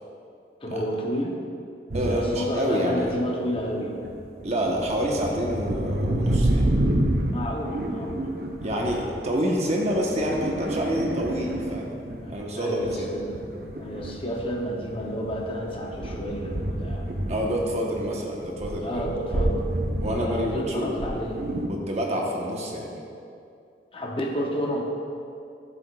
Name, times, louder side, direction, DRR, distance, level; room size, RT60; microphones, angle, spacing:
voice 1, 0.6-1.4 2.0-4.0 7.3-8.3 12.2-13.4 13.8-17.1 18.8-19.7 20.1-21.5 23.9-24.8, equal, 30° left, 1 dB, 0.7 m, -31 dB
voice 2, 1.9-3.1 4.4-6.7 8.6-11.9 12.3-13.1 17.3-19.1 20.0-21.1 21.7-22.9, equal, 40° right, -1 dB, 1.0 m, -27 dB
sound 1, 1.9-2.4 3.0-3.7 4.0-12.4 12.8-18.1 18.4-21.7, right 1 dB, 60° right, 0.7 m, -29 dB
12.5 x 7.0 x 2.3 m, 2.5 s
head